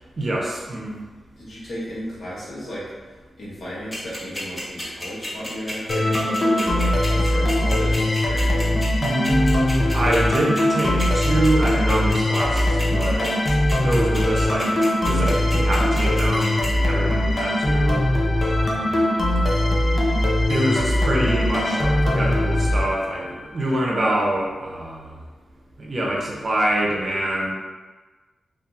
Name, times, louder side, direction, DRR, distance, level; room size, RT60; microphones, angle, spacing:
voice 1, 0.2-1.0 9.0-13.3 13.7-18.1 18.4-18.9 20.5-25.1 25.8-27.5, right 1 dB, 50° right, -2 dB, 0.6 m, -25 dB
voice 2, 1.4-8.7, equal, 65° left, -9 dB, 1.1 m, -34 dB
sound 1, 3.9-16.7, left 1 dB, 15° left, 1.1 m, -32 dB
sound 2, 5.9-23.4, left 1 dB, 40° left, 0.5 m, -21 dB
2.7 x 2.4 x 2.4 m, 1.3 s
cardioid pair, 65°, 0 cm